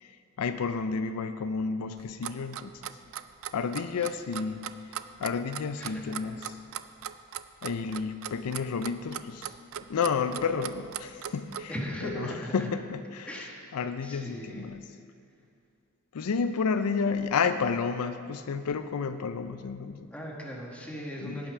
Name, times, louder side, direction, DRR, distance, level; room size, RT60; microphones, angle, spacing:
voice 1, 0.0-2.8 3.5-4.6 5.2-6.6 7.6-9.5 9.9-11.7 12.0-14.9 16.1-20.1 21.2-21.4, left 5 dB, 75° left, 10 dB, 0.4 m, -31 dB
Clock, 2.0-11.7, right 10 dB, 65° right, 0.4 m, -38 dB
voice 2, 5.8-6.3 11.7-12.7 13.3-13.6 14.0-14.7 20.1-21.5, equal, 5° left, -2 dB, 1.5 m, -38 dB
17.5 x 5.8 x 4.8 m, 2.3 s
head